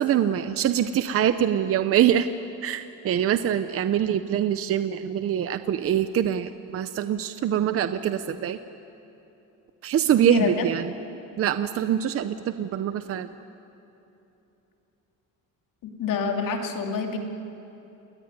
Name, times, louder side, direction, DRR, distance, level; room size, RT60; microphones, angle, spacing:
voice 1, 0.0-2.3 2.6-8.6 9.8-10.9 11.4-13.3, right 10 dB, 40° right, 11 dB, 0.7 m, -24 dB
voice 2, 10.2-10.7 15.8-17.2, left 6 dB, 65° left, 3 dB, 2.8 m, -27 dB
28.5 x 20.0 x 9.6 m, 3.0 s
cardioid pair, 170°, 35 cm